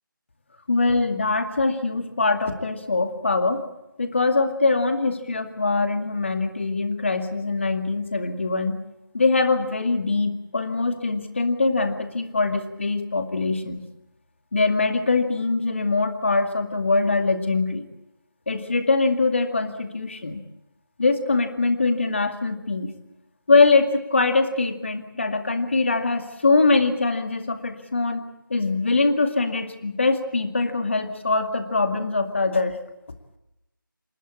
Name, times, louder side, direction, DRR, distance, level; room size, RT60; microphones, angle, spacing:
voice 1, 0.7-3.6 4.0-8.8 9.1-13.8 14.5-17.8 18.5-20.4 21.0-22.9 23.5-32.8, left 3 dB, 35° left, 6 dB, 2.1 m, -23 dB
28.0 x 14.0 x 8.4 m, 0.90 s
figure-of-eight pair, 170°, 12 cm